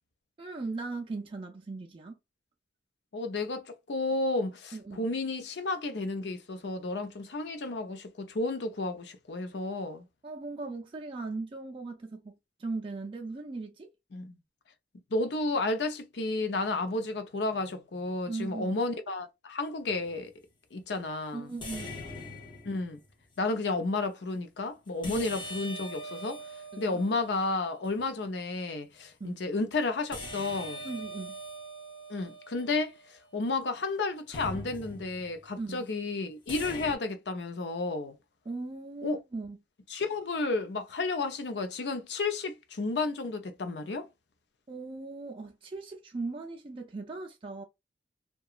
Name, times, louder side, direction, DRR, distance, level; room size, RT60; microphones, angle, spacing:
voice 1, 0.4-2.2 4.7-5.1 10.2-12.3 12.6-13.9 18.3-18.7 21.3-22.0 25.1-25.3 26.7-27.0 29.2-29.4 30.8-31.4 35.6-35.9 38.5-39.6 44.7-47.6, right 3 dB, 30° right, 0.4 m, -38 dB
voice 2, 3.1-10.0 14.1-14.3 15.1-20.3 20.7-21.5 22.7-23.0 23.4-26.4 26.8-30.8 32.1-38.2 39.0-39.2 39.9-44.1, left 3 dB, 75° left, 0.6 m, -32 dB
sound 1, 19.9-20.2 21.6-23.1 25.0-28.1 30.1-33.5 34.3-35.4 36.5-36.9, equal, 25° left, 0.6 m, -42 dB
2.8 x 2.2 x 2.4 m
head